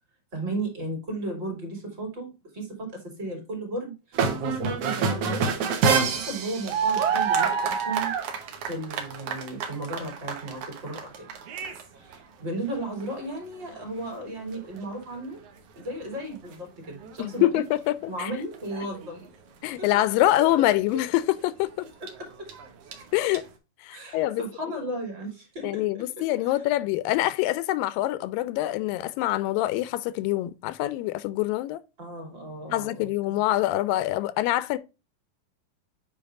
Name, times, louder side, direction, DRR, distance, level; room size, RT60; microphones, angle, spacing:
voice 1, 0.3-5.5 5.9-8.1 8.7-11.3 11.9-15.4 15.8-17.6 18.1-19.3 19.8-19.9 20.1-20.2 20.5-20.6 22.0-22.5 23.9-26.5 32.0-33.1, right 1 dB, 35° right, 3.0 m, -35 dB
sound 1, 4.1-11.8 12.1-12.2 12.8-13.4 13.8-13.9 14.2-14.3 14.5-14.8 16.5-16.6 17.0-17.3 17.9-19.1 20.2-20.6 20.9-21.0 22.1-23.4, right 5 dB, 60° right, 1.8 m, -27 dB
voice 2, 17.2-18.3 19.6-21.9 23.1-23.4 23.8-24.8 25.6-31.8 32.7-34.8, left 15 dB, 85° left, 2.3 m, -25 dB
8.6 x 5.2 x 2.5 m
omnidirectional pair, 4.0 m